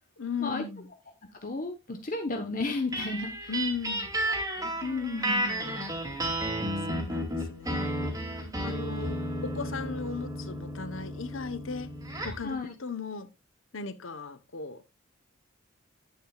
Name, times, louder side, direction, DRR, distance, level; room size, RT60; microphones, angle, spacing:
voice 1, 0.2-0.9 3.5-4.1 5.2-5.9 6.1-11.9 12.2-13.3 13.7-14.8, left 5 dB, 70° left, 1.0 m, -37 dB
voice 2, 1.4-3.5 4.6-5.5 12.4-12.7, left 3 dB, 40° left, 1.1 m, -33 dB
sound 1, 2.9-12.5, right 1 dB, 15° right, 2.5 m, -33 dB
11.0 x 9.0 x 2.4 m
head